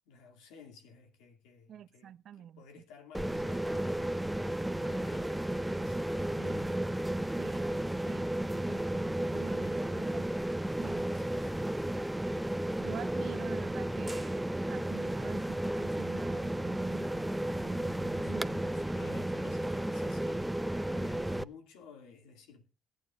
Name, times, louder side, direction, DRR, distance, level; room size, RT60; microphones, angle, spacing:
voice 1, 0.1-4.3 4.8-6.8 9.5-9.8 10.9-11.6 17.6-22.7, left 5 dB, 90° left, 2.3 m, -55 dB
voice 2, 1.7-2.6 6.4-6.7 7.4-7.7 8.1-10.3 10.8-11.1 12.8-18.9, right 10 dB, 65° right, 0.5 m, -47 dB
sound 1, 3.1-21.4, right 1 dB, 5° right, 0.6 m, -33 dB
18.5 x 9.0 x 2.4 m
supercardioid pair, 65°, 0 cm